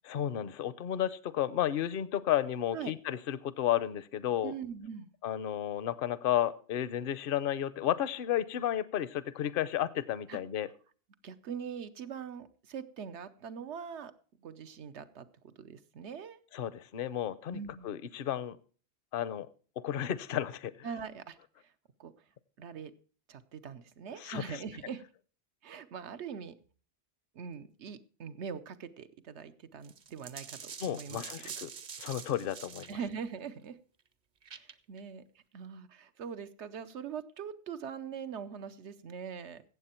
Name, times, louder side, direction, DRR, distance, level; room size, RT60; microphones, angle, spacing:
voice 1, 0.1-4.5 5.2-10.7 16.5-17.6 17.8-18.6 19.1-19.5 19.8-20.9 24.2-24.6 30.8-31.7 32.0-33.0, left 11 dB, 60° left, 17 dB, 0.8 m, -32 dB
voice 2, 4.4-5.1 10.3-10.4 11.2-14.1 14.4-16.4 17.5-17.9 20.8-21.7 22.0-22.1 22.6-22.9 23.3-25.0 25.6-26.5 27.3-31.5 32.9-33.8 34.6-39.6, right 7 dB, 85° right, 12 dB, 1.1 m, -42 dB
sound 1, 29.8-33.0 34.4-35.0, right 6 dB, 50° right, 0.8 m, -45 dB
16.0 x 7.6 x 4.3 m, 0.40 s
omnidirectional pair, 1.1 m